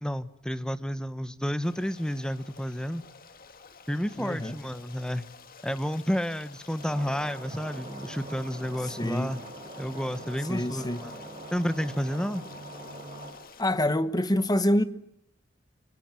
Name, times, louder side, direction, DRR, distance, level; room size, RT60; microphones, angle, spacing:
voice 1, 0.0-3.0 3.9-5.2 5.6-9.4 9.8-11.2 11.5-12.4, equal, 5° left, 1.0 m, -31 dB
Stream, 1.6-13.6, left 5 dB, 45° left, 2.0 m, -51 dB
voice 2, 4.2-4.6 8.8-9.3 10.5-11.0 13.6-14.8, left 1 dB, 20° left, 1.3 m, -26 dB
sound 1, 6.8-13.3, right 1 dB, 30° right, 6.7 m, -43 dB
26.0 x 25.0 x 7.6 m
head